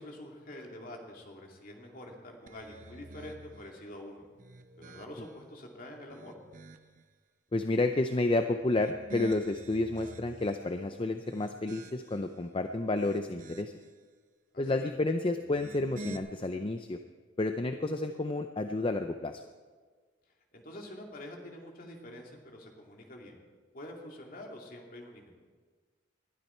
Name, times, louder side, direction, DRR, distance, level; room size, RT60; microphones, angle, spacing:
voice 1, 0.0-4.3 4.8-6.3 14.5-14.9 20.5-23.4 23.7-25.3, left 1 dB, 45° left, 1 dB, 2.5 m, -46 dB
sound 1, 2.5-3.8 4.3-5.4 5.9-7.0 8.5-10.7 11.2-12.3 12.8-13.9 15.4-16.2, right 2 dB, 45° right, 0.8 m, -48 dB
voice 2, 7.5-13.7 14.6-17.0 17.4-19.4, left 2 dB, 25° left, 7 dB, 0.5 m, -30 dB
20.0 x 12.0 x 4.4 m, 1.5 s
head